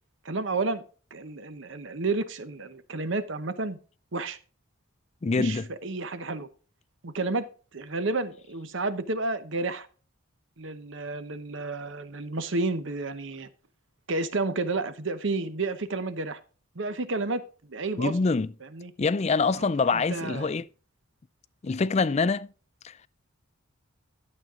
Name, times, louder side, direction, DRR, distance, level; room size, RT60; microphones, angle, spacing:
voice 1, 0.2-0.8 1.1-3.8 4.1-4.4 5.4-6.5 7.0-7.5 7.7-9.9 10.6-13.5 14.1-16.4 16.7-18.2 18.6-18.9 19.5-20.5, right 3 dB, 60° right, 0.9 m, -31 dB
voice 2, 5.2-5.7 18.0-18.5 19.0-20.7 21.6-22.5 22.8-22.9, left 4 dB, 30° left, 0.4 m, -25 dB
12.0 x 7.6 x 3.7 m
head